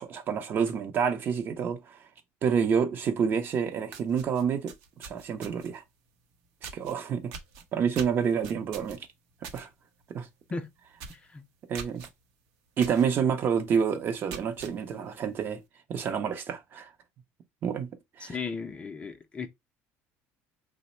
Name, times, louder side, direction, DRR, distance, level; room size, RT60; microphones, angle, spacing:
voice 1, 0.0-2.1 2.4-5.8 6.6-7.3 7.7-9.1 9.5-9.7 10.1-10.3 11.7-12.1 12.8-15.6 15.9-16.9 17.6-17.9 18.2-18.4, right 7 dB, 40° right, 0.6 m, -28 dB
sound 1, 3.5-3.6 3.9-5.8 6.6-6.9 7.3-9.6 10.0-10.2 10.5-10.6 11.0-11.3 11.7-12.1 12.8-13.1 13.5-13.6 14.1-14.7, right 6 dB, 80° right, 0.7 m, -43 dB
voice 2, 11.1-11.4 18.2-19.5, left 4 dB, 20° left, 0.4 m, -36 dB
3.0 x 2.0 x 4.1 m
cardioid pair, 130°, 5 cm